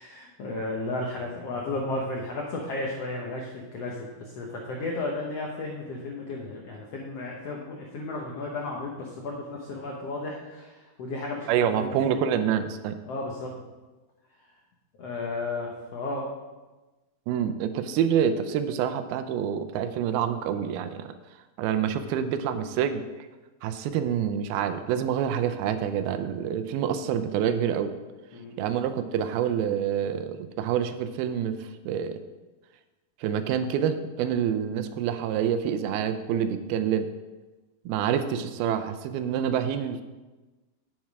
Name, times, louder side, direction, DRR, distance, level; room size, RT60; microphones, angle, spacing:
voice 1, 0.0-12.2 13.1-13.5 15.0-16.3 28.3-28.5, left 2 dB, 80° left, -1 dB, 1.4 m, -34 dB
voice 2, 11.5-13.0 17.3-21.1 21.6-23.0 23.6-27.9 28.6-32.2 33.2-37.1 37.9-40.0, right 8 dB, 85° right, 9 dB, 2.5 m, -27 dB
8.5 x 7.4 x 4.7 m, 1.2 s
omnidirectional pair, 4.3 m